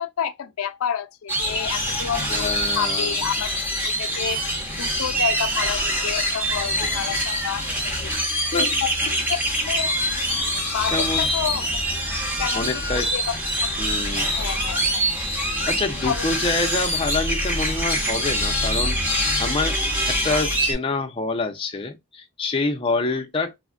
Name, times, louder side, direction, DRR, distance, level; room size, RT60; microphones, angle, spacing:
voice 1, 0.0-3.5 3.9-4.5 4.8-8.1 8.5-10.0 10.4-11.7 12.4-13.4 13.6-13.7 14.4-15.0 16.1-16.2, left 8 dB, 85° left, 0.4 m, -29 dB
sound 1, 1.3-20.7, equal, 10° right, 0.8 m, -24 dB
voice 2, 2.3-3.2 8.2-8.7 10.9-11.3 12.5-13.1 13.8-14.3 15.7-19.0 19.4-19.8 20.1-23.6, left 3 dB, 25° left, 0.5 m, -26 dB
3.3 x 2.1 x 2.4 m
head